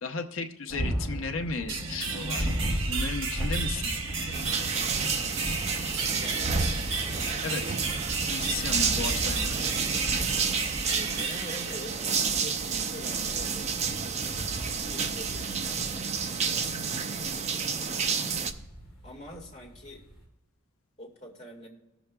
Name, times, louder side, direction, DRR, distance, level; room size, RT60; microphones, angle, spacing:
voice 1, 0.0-2.4 2.9-4.0 4.4-4.7 7.4-7.8 8.3-9.5, left 4 dB, 65° left, 4 dB, 0.8 m, -35 dB
sound 1, 0.7-20.2, right 1 dB, ahead, 3.5 m, -36 dB
sound 2, 1.7-12.4, right 4 dB, 60° right, 1.0 m, -34 dB
sound 3, 4.3-18.5, right 6 dB, 30° right, 0.4 m, -30 dB
voice 2, 5.9-6.7 10.5-16.6 17.6-18.3 19.0-20.0 21.0-21.7, equal, 30° left, -3 dB, 2.2 m, -45 dB
20.0 x 7.0 x 2.3 m, 0.96 s
head